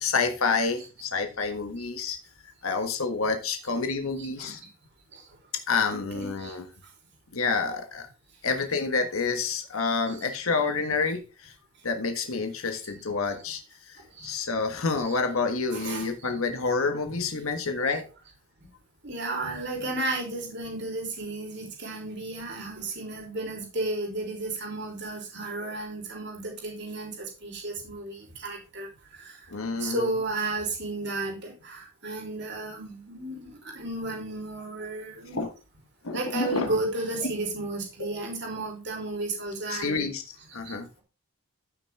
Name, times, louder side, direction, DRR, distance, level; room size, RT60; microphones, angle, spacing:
voice 1, 0.0-2.2 2.6-4.6 5.5-6.7 7.3-8.1 8.4-11.5 11.8-13.6 13.9-18.0 29.5-30.0 35.3-35.5 36.0-36.7 38.0-38.1 39.7-40.9, left 4 dB, 90° left, 1.5 m, -28 dB
voice 2, 4.2-4.7 5.1-5.4 6.1-6.6 10.2-10.3 13.3-13.4 14.0-14.3 15.0-15.1 15.7-16.3 17.1-17.2 18.6-18.7 19.0-29.5 29.8-35.4 36.1-40.1 40.6-40.7, right 2 dB, 55° right, 3.4 m, -33 dB
14.0 x 6.1 x 3.5 m
head